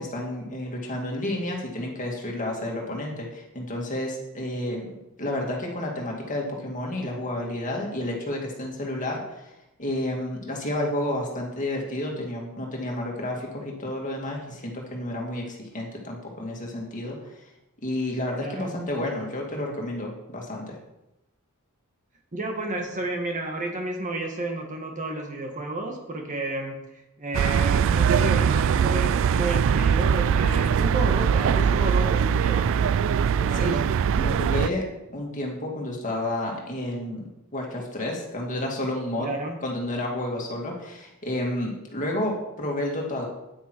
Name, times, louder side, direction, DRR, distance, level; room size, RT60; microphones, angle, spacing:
voice 1, 0.0-4.9 5.2-9.4 9.8-17.2 17.8-20.7 33.5-33.8 34.1-34.8 35.1-37.2 37.5-39.3 39.6-43.2, left 1 dB, 35° left, -1 dB, 2.3 m, -30 dB
voice 2, 22.3-26.8 27.2-32.7 33.3-33.8 39.2-39.6, right 2 dB, 35° right, 2 dB, 1.6 m, -31 dB
sound 1, 27.3-34.7, right 7 dB, 60° right, 0.3 m, -22 dB
9.4 x 9.2 x 4.6 m, 0.93 s
head